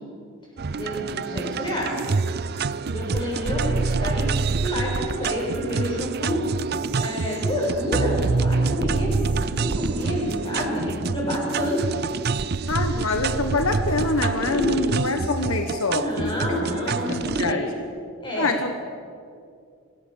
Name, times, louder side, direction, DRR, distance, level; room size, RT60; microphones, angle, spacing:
sound 1, 0.6-17.5, right 4 dB, 45° right, 0.5 m, -26 dB
voice 1, 0.7-2.1 2.8-4.3 4.6-6.4 7.0-12.0 12.9-13.0 14.5-15.0 15.9-17.7 18.2-18.5, equal, 20° left, -3 dB, 7.3 m, -28 dB
voice 2, 12.7-16.3 16.9-17.7 18.4-18.7, left 3 dB, 70° left, 6 dB, 1.3 m, -25 dB
25.5 x 17.5 x 7.1 m, 2.4 s
head